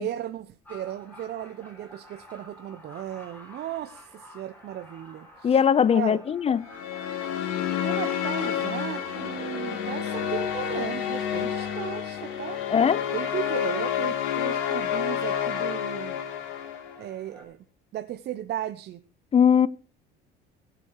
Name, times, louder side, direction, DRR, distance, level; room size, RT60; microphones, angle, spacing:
voice 1, 0.0-5.5 5.9-6.2 7.8-12.6 13.1-16.2 17.0-17.6 17.9-19.0, right 12 dB, 50° right, 0.9 m, -36 dB
sound 1, 0.6-17.4, equal, 10° left, 5.4 m, -51 dB
voice 2, 5.4-6.7 12.7-13.1 19.3-19.7, left 7 dB, 30° left, 0.5 m, -20 dB
sound 2, 6.7-17.1, left 9 dB, 70° left, 3.1 m, -29 dB
20.0 x 8.0 x 4.7 m
supercardioid pair, 105°, 21 cm